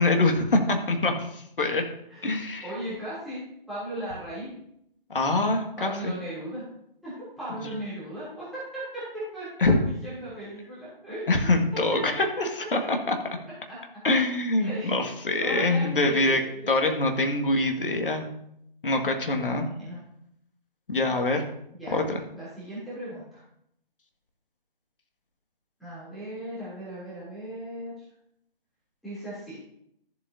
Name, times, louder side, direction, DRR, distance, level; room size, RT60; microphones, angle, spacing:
voice 1, 0.0-1.8 2.2-2.7 5.1-6.1 9.6-9.8 11.3-13.2 14.0-16.4 16.7-18.3 18.8-19.7 20.9-21.4 21.9-22.2, left 2 dB, 65° left, 3 dB, 2.0 m, -24 dB
voice 2, 2.6-4.5 5.8-6.7 7.0-11.5 12.1-12.2 13.7-13.8 14.6-14.9 15.4-16.8 19.3-20.0 21.7-22.0 22.4-23.4 25.8-28.0 29.0-29.6, right 1 dB, ahead, -11 dB, 3.1 m, -37 dB
14.0 x 7.9 x 2.8 m, 0.74 s
figure-of-eight pair, 145°, 29 cm